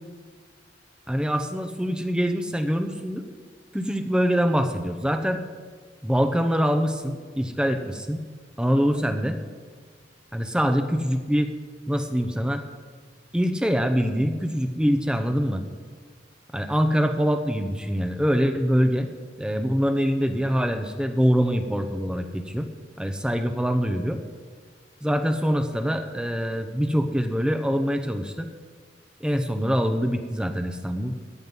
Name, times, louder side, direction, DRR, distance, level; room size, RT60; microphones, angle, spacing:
voice 1, 1.1-3.2 3.7-5.4 6.0-8.2 8.6-9.4 10.3-11.5 11.9-12.6 13.3-15.6 16.5-19.1 19.4-22.7 23.0-24.2 25.0-28.5 29.2-31.1, equal, 5° right, 7 dB, 0.7 m, -24 dB
15.5 x 9.5 x 5.4 m, 1.5 s
head